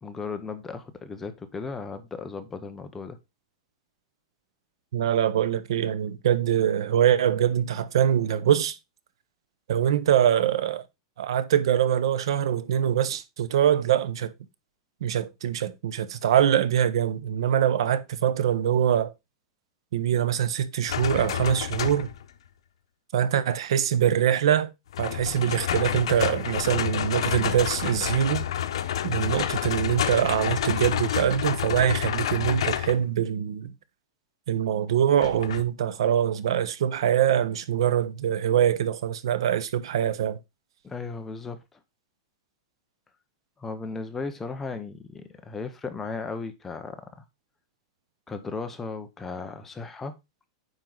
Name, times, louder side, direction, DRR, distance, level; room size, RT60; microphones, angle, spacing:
voice 1, 0.0-3.2 40.8-41.8 43.6-47.1 48.3-50.1, left 4 dB, 10° left, 0.7 m, -36 dB
voice 2, 4.9-8.8 9.7-10.8 11.2-14.3 15.0-19.1 19.9-22.1 23.1-24.7 25.0-28.5 29.0-33.7 34.5-40.4, right 9 dB, 70° right, 1.0 m, -24 dB
sound 1, 20.9-22.2 24.9-33.0 35.2-35.6, left 10 dB, 85° left, 0.9 m, -29 dB
9.1 x 4.8 x 3.9 m
supercardioid pair, 170°, 3 cm